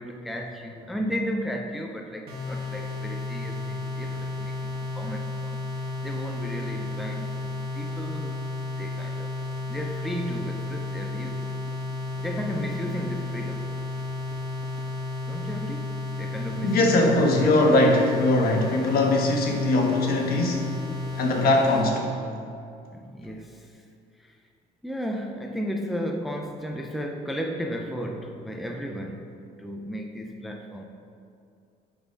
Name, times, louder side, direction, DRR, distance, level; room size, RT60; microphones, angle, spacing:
voice 1, 0.0-5.6 6.0-8.4 8.8-9.4 9.7-11.6 12.2-13.7 15.3-17.1 21.6-21.7 22.9-23.8 24.2-24.4 24.8-29.3 29.6-30.8, equal, ahead, 2 dB, 0.6 m, -34 dB
sound 1, 2.3-21.9, left 2 dB, 70° right, 1.7 m, -32 dB
voice 2, 16.6-20.7 21.2-22.2, left 2 dB, 60° left, 1 dB, 1.4 m, -21 dB
9.3 x 4.0 x 5.2 m, 2.4 s
cardioid pair, 110°, 17 cm